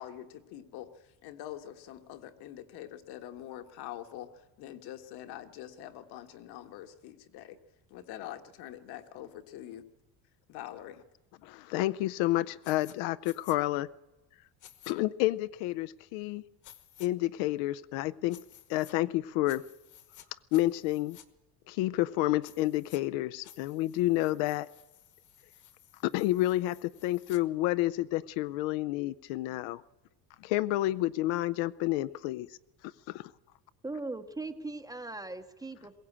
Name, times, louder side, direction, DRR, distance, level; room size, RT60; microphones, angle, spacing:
voice 1, 0.0-7.6 7.9-9.8 10.5-11.0, left 12 dB, 65° left, 8 dB, 1.6 m, -45 dB
voice 2, 11.4-13.9 14.9-16.4 17.0-18.4 18.7-19.6 20.5-21.2 21.7-24.7 26.0-29.8 30.4-32.5 33.1-33.3, left 16 dB, 85° left, 14 dB, 0.6 m, -29 dB
sound 1, 12.6-12.9 13.2-13.6 14.6-14.9 16.6-17.1 18.3-18.9 19.4-20.3 20.5-21.2 22.4-23.0 23.4-27.4, left 11 dB, 45° left, 1.3 m, -55 dB
voice 3, 33.8-36.0, right 2 dB, 10° right, 9 dB, 0.6 m, -39 dB
21.5 x 16.5 x 8.6 m, 1.1 s
cardioid pair, 170°, 42 cm